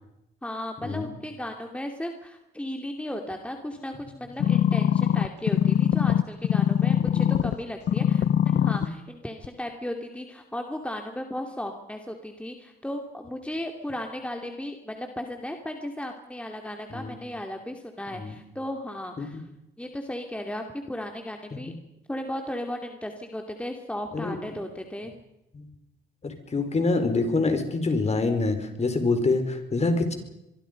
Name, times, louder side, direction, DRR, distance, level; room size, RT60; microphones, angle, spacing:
voice 1, 0.4-19.4 19.8-21.7 22.1-25.1, left 1 dB, 5° left, 4 dB, 2.6 m, -35 dB
sound 1, 4.4-7.6 7.9-8.9 9.4-9.5, left 9 dB, 60° left, 1.0 m, -22 dB
voice 2, 6.9-7.2 16.9-17.1 18.1-18.3 19.2-19.3 21.7-21.8 24.1-24.4 25.5-25.7 26.2-30.1, left 3 dB, 35° left, 7 dB, 4.7 m, -26 dB
25.0 x 23.0 x 5.3 m, 0.89 s
cardioid pair, 90°, 20 cm